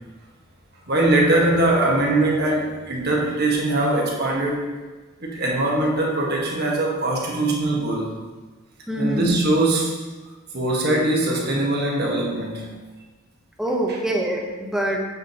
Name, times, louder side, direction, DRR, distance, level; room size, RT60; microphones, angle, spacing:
voice 1, 0.9-4.6 5.2-8.1 9.0-10.0 10.5-12.7, right 2 dB, 50° right, -2 dB, 1.3 m, -21 dB
voice 2, 8.9-9.3 13.6-15.0, right 1 dB, ahead, -1 dB, 0.8 m, -24 dB
7.4 x 6.6 x 2.8 m, 1.3 s
head